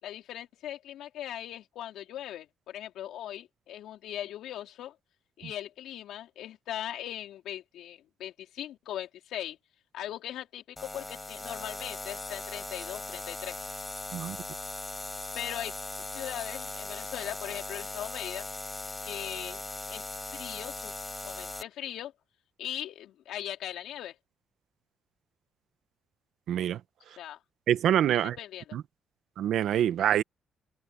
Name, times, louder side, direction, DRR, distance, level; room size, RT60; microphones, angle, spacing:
voice 1, 0.0-5.0 5.4-9.6 9.9-13.6 15.3-18.5 19.0-19.6 19.9-20.0 20.3-20.9 21.2-22.1 22.6-24.2 27.2-27.4 28.1-28.8, left 12 dB, 80° left, 3.9 m, -39 dB
sound 1, 10.8-21.6, left 2 dB, 15° left, 5.2 m, -39 dB
voice 2, 26.5-26.8 27.7-28.4 28.7-28.8 29.4-30.2, right 10 dB, 75° right, 1.2 m, -25 dB
cardioid pair, 90°, 0 cm